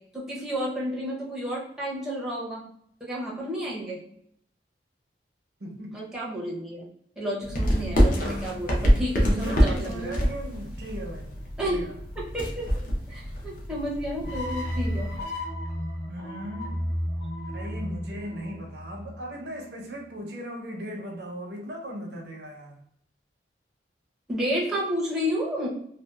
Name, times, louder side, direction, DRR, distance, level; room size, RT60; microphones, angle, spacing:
voice 1, 0.1-2.6 3.0-4.0 5.9-6.9 7.2-10.1 11.6-11.8 12.2-12.7 13.1-15.1 24.3-25.7, equal, 5° right, -6 dB, 0.6 m, -31 dB
voice 2, 5.6-6.0 8.2-8.4 9.2-11.3 11.6-12.0 16.1-16.8 17.5-22.8, equal, 65° right, 1 dB, 0.6 m, -37 dB
sound 1, 7.4-15.2, equal, 50° left, 0.6 m, -26 dB
sound 2, 14.2-19.4, equal, 75° left, 0.8 m, -33 dB
2.6 x 2.3 x 2.2 m, 0.70 s
head